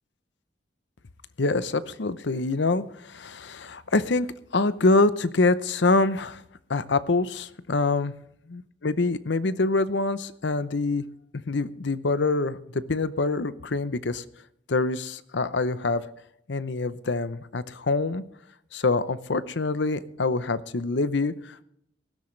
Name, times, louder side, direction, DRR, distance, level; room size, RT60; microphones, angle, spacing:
voice 1, 1.4-4.3 4.5-6.4 6.7-8.1 8.5-11.0 11.5-14.2 14.7-16.0 16.5-18.2 18.7-21.6, left 3 dB, 70° left, 15 dB, 0.7 m, -25 dB
19.0 x 12.5 x 3.3 m, 0.74 s
head